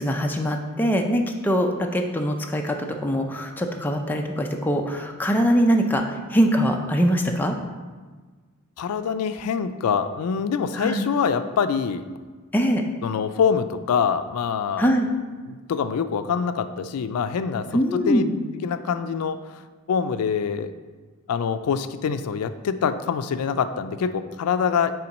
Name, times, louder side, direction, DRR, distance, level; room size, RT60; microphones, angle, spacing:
voice 1, 0.0-2.8 3.0-7.6 10.8-11.1 12.5-12.8 14.8-15.1 17.7-18.3, equal, 10° left, 2 dB, 0.4 m, -22 dB
voice 2, 8.8-12.0 13.0-14.9 15.5-18.2 18.6-19.6 19.9-20.7 21.3-24.9, left 6 dB, 90° left, 11 dB, 0.4 m, -25 dB
5.7 x 3.7 x 5.2 m, 1.4 s
head